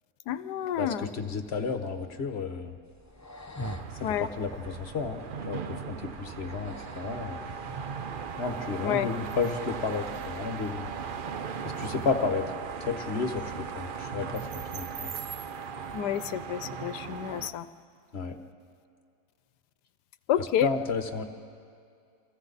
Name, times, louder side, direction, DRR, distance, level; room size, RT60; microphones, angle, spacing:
voice 1, 0.3-1.1 4.0-4.3 8.8-9.1 15.9-17.7 20.3-20.7, left 11 dB, 85° left, 13 dB, 1.3 m, -29 dB
voice 2, 0.8-2.8 4.0-7.4 8.4-10.9 11.8-12.4 12.9-14.5 14.7-15.1 18.1-18.4 20.3-21.2, left 4 dB, 45° left, 6 dB, 1.3 m, -32 dB
sound 1, 2.8-8.3, equal, 25° left, 0.3 m, -45 dB
sound 2, 3.6-17.5, right 6 dB, 60° right, 0.5 m, -38 dB
sound 3, 7.0-17.0, right 4 dB, 20° right, 3.9 m, -45 dB
29.0 x 26.0 x 4.1 m, 2.3 s
omnidirectional pair, 1.7 m